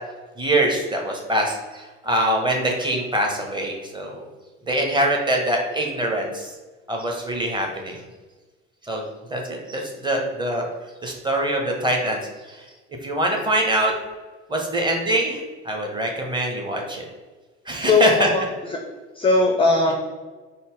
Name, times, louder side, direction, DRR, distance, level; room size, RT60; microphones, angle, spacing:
voice 1, 0.4-4.2 4.7-6.5 6.9-8.0 8.9-9.0 9.3-10.7 11.0-12.2 12.5-12.6 13.0-13.9 14.5-17.0 17.7-18.3, right 1 dB, 10° right, 1 dB, 0.8 m, -24 dB
voice 2, 17.9-18.4 18.7-18.8 19.2-19.9, left 3 dB, 15° left, 1 dB, 0.4 m, -18 dB
3.9 x 2.1 x 3.7 m, 1.3 s
figure-of-eight pair, 60°, 38 cm